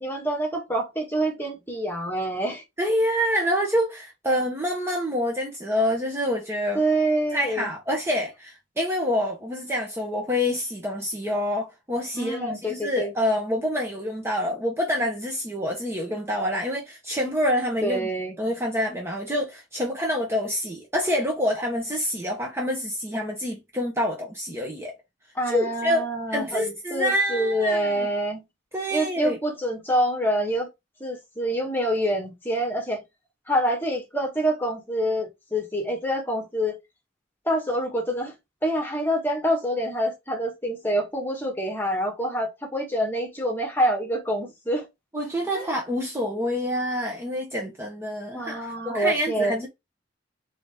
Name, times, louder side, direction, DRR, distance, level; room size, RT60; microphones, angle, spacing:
voice 1, 0.0-2.6 6.8-7.7 12.1-13.1 17.8-18.4 25.4-28.5 28.9-30.7 31.0-33.0 33.5-36.8 37.5-38.3 38.6-44.9 45.5-45.7 48.3-49.5, right 1 dB, 10° left, 1.6 m, -26 dB
voice 2, 2.8-6.8 7.3-18.1 18.4-24.9 25.5-26.1 26.3-28.1 28.7-29.4 45.1-49.7, equal, 15° right, 0.9 m, -27 dB
4.0 x 3.9 x 3.5 m
head